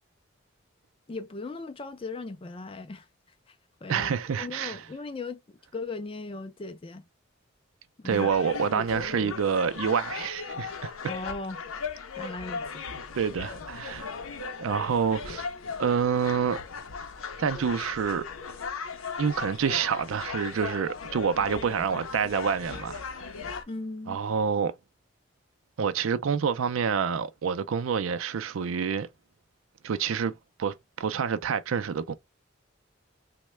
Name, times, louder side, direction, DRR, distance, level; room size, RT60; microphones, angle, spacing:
voice 1, 1.1-3.1 3.5-3.6 3.8-7.1 8.0-8.3 11.1-11.6 12.2-12.8 23.7-24.2, left 3 dB, 25° left, 0.4 m, -38 dB
voice 2, 3.9-4.8 8.0-10.9 13.2-14.1 14.6-15.5 15.8-16.6 17.4-18.2 19.2-23.2 24.1-24.7 25.8-29.1 29.8-30.3 30.6-32.1, right 6 dB, 80° right, 0.4 m, -27 dB
sound 1, 8.1-23.6, left 5 dB, 85° left, 0.6 m, -37 dB
3.1 x 2.2 x 3.0 m
head